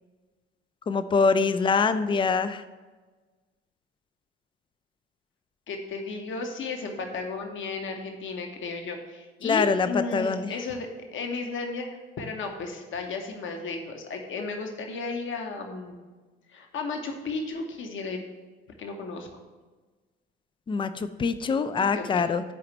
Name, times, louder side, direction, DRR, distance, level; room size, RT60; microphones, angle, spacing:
voice 1, 0.9-2.6 9.4-10.5 20.7-22.4, left 4 dB, 15° left, 13 dB, 0.4 m, -24 dB
voice 2, 5.7-16.0 16.5-18.2 18.7-19.3 21.8-22.4, left 3 dB, 40° left, 3 dB, 1.1 m, -34 dB
10.5 x 4.7 x 3.3 m, 1.3 s
figure-of-eight pair, 50°, 31 cm